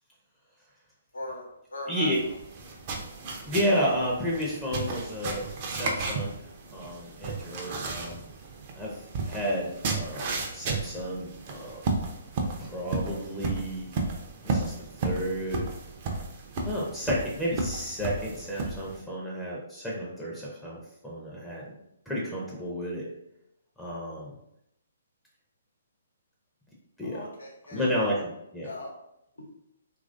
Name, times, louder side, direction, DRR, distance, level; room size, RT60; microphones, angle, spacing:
voice 1, 1.1-2.1 27.0-28.2 28.6-28.9 29.4-29.5, left 2 dB, 80° left, -1 dB, 0.9 m, -39 dB
voice 2, 1.9-2.2 3.4-8.2 8.7-11.8 12.6-13.9 14.4-15.7 16.6-21.7 22.1-23.1 23.8-24.4 27.0-27.2 27.7-28.7, equal, 5° left, -5 dB, 0.6 m, -32 dB
sound 1, 2.1-19.0, right 3 dB, 40° right, 0.5 m, -34 dB
3.0 x 2.5 x 2.5 m, 0.81 s
figure-of-eight pair, 130°, 0 cm